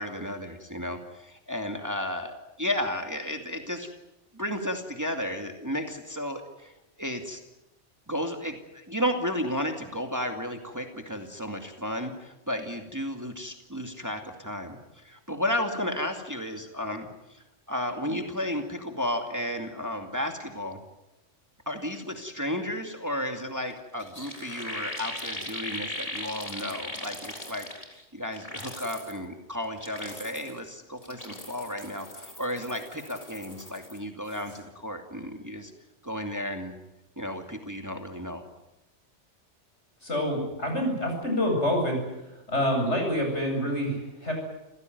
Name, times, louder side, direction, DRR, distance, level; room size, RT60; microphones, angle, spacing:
voice 1, 0.0-3.9 4.3-6.7 7.0-7.4 8.1-20.8 21.7-27.7 28.1-35.7 36.0-36.7 37.2-38.4, left 1 dB, 15° right, 4 dB, 2.4 m, -33 dB
sound 1, 23.7-23.8 24.0-28.0 28.3-29.2 29.6-30.6 31.0-34.0 34.3-34.6, left 1 dB, 30° left, 4.0 m, -39 dB
voice 2, 40.0-42.0 42.5-44.3, equal, 70° left, 2 dB, 8.4 m, -27 dB
28.5 x 16.5 x 9.3 m, 0.97 s
omnidirectional pair, 1.2 m